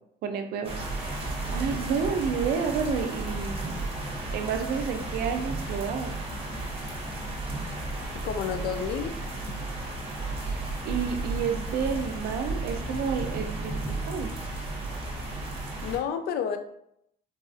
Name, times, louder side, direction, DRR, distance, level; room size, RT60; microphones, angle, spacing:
voice 1, 0.2-3.7 4.3-6.2 10.4-13.8 14.1-14.3, right 6 dB, 70° right, 6 dB, 0.5 m, -30 dB
sound 1, 0.6-16.0, right 2 dB, 35° right, 0.9 m, -33 dB
sound 2, 3.6-9.6, right 1 dB, ahead, 1.0 m, -47 dB
voice 2, 8.2-9.1 15.8-16.6, left 7 dB, 70° left, 8 dB, 0.4 m, -30 dB
4.0 x 2.4 x 2.5 m, 0.76 s
cardioid pair, 110°, 17 cm